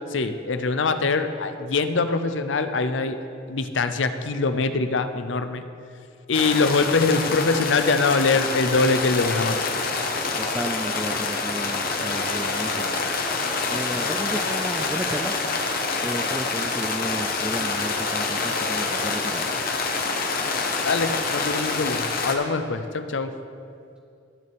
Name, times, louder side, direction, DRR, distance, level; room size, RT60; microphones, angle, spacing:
voice 1, 0.1-3.2 3.5-5.6 6.3-9.7 20.8-23.3, left 4 dB, 75° left, 9 dB, 0.6 m, -23 dB
sound 1, 6.3-22.4, left 4 dB, 50° left, 1.0 m, -26 dB
voice 2, 10.3-13.1 13.7-15.3 16.0-19.5, right 1 dB, 5° right, 4 dB, 0.3 m, -33 dB
18.0 x 6.7 x 3.5 m, 2.5 s
head